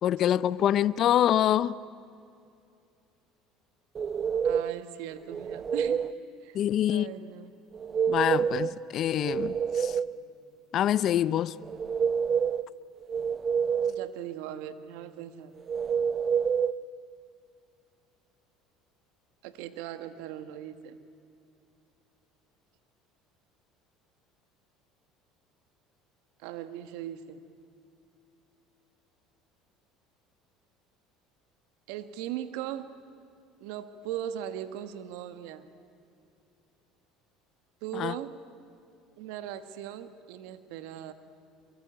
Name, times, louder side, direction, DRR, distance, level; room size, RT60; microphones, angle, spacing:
voice 1, 0.0-1.8 6.5-7.1 8.1-10.0 10.7-11.6 37.9-38.1, left 11 dB, 55° left, 0.6 m, -25 dB
sound 1, 3.9-4.8 5.3-6.1 7.7-8.7 9.1-10.2 11.6-12.6 13.1-14.1 15.7-16.7, right 7 dB, 35° right, 0.6 m, -28 dB
voice 2, 4.4-6.1 6.4-6.6 6.9-7.5 13.9-15.5 19.4-21.0 26.4-27.4 31.9-32.9 33.6-35.7 37.8-38.4 39.2-41.1, right 11 dB, 75° right, 1.6 m, -39 dB
27.0 x 23.0 x 9.0 m
supercardioid pair, 90°, 0 cm